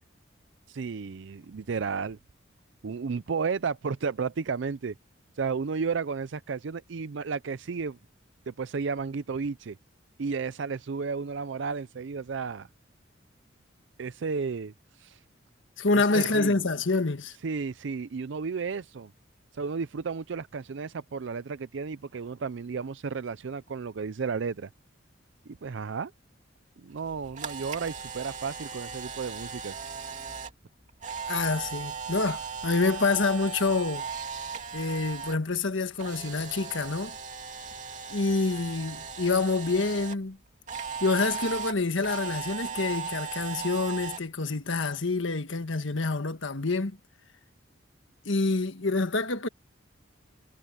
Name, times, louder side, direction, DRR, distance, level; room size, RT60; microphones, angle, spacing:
voice 1, 0.7-2.2 2.8-4.9 5.4-8.0 8.5-9.8 10.2-12.7 14.0-15.2 15.9-16.6 17.4-19.1 19.5-24.7 25.5-26.1 26.8-29.8, right 5 dB, 70° right, 0.5 m, -33 dB
voice 2, 15.8-17.4 31.3-34.1 34.7-37.1 38.1-40.4 41.0-47.0 48.2-49.5, left 3 dB, 75° left, 1.4 m, -27 dB
Camera, 27.0-35.4 35.7-40.2 40.7-44.2, right 6 dB, 40° right, 2.9 m, -37 dB
head